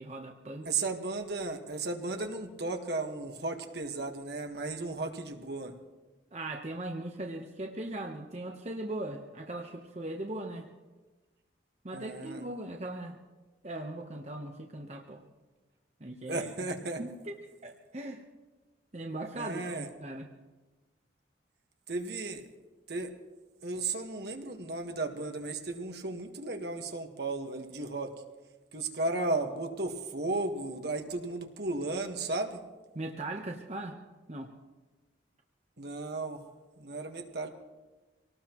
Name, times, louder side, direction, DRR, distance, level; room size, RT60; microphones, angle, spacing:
voice 1, 0.0-0.7 6.3-10.7 11.8-13.2 13.6-15.2 16.0-16.5 17.0-18.2 18.9-20.3 32.9-34.0 34.3-34.5, right 1 dB, 35° right, 2 dB, 1.0 m, -39 dB
voice 2, 0.6-5.7 11.9-12.4 16.3-17.0 19.3-19.9 21.9-22.4 22.9-23.1 23.6-28.1 28.7-32.6 35.8-36.4 36.8-37.5, right 3 dB, 65° right, 4 dB, 1.5 m, -34 dB
25.0 x 18.5 x 3.1 m, 1.2 s
head